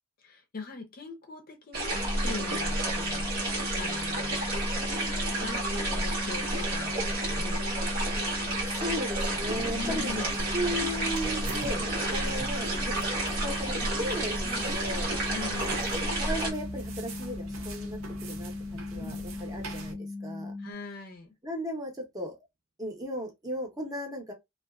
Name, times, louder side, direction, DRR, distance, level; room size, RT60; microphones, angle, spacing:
voice 1, 0.2-3.3 3.7-4.7 5.3-7.6 9.7-10.5 14.4-14.7 15.3-15.9 18.9-19.3 20.6-21.4, left 4 dB, 45° left, 0.6 m, -42 dB
sound 1, 1.7-16.5, right 2 dB, 50° right, 1.1 m, -30 dB
sound 2, 1.9-20.7, left 3 dB, 5° left, 0.8 m, -39 dB
voice 2, 8.4-10.2 10.5-12.9 13.4-15.1 16.0-20.5 21.4-22.4 22.8-24.3, equal, 20° right, 0.8 m, -36 dB
sound 3, 9.3-19.9, right 2 dB, 85° right, 0.6 m, -43 dB
2.5 x 2.3 x 2.2 m
head